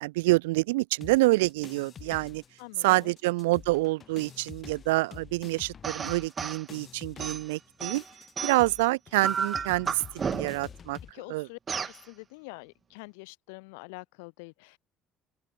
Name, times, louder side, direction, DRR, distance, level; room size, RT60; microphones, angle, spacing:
voice 1, 0.0-2.4 2.8-8.0 8.4-11.0 11.3-11.5, right 21 dB, 85° right, 0.5 m, -27 dB
sound 1, 1.0-2.6 2.9-11.1, left 7 dB, 45° left, 6.4 m, -47 dB
voice 2, 2.6-3.1 11.1-11.6 11.8-14.8, left 31 dB, 85° left, 7.7 m, -46 dB
sound 2, 5.8-6.6 7.2-8.8 9.2-10.7 11.7-12.0, right 6 dB, 40° right, 1.1 m, -33 dB
open air
hypercardioid pair, 65°, 0 cm